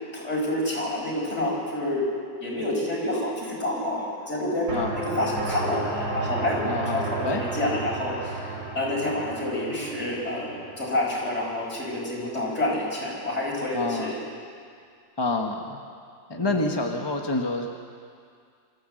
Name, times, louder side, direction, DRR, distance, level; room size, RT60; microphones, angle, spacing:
voice 1, 0.1-2.0 2.4-8.4 8.7-10.5 10.8-14.2 16.3-16.6, left 1 dB, 35° left, -3 dB, 5.5 m, -28 dB
sound 1, 4.7-11.4, right 3 dB, 65° right, 3.6 m, -33 dB
voice 2, 6.6-7.4 13.7-14.1 15.2-15.8 16.3-17.7, left 2 dB, 20° left, 3 dB, 0.8 m, -28 dB
25.5 x 14.5 x 7.7 m, 2.3 s
omnidirectional pair, 2.1 m